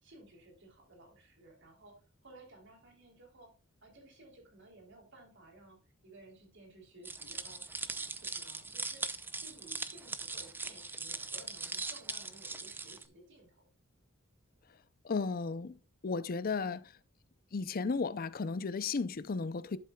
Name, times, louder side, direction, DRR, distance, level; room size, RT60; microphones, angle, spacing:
voice 1, 0.0-1.9 2.2-3.5 3.8-5.8 6.0-13.6, right 2 dB, 60° right, 3.4 m, -57 dB
sound 1, 7.0-13.0, right 3 dB, 10° right, 0.5 m, -40 dB
voice 2, 15.0-15.8 16.0-16.8 17.5-19.8, left 4 dB, 45° left, 0.5 m, -34 dB
11.5 x 7.6 x 2.3 m
head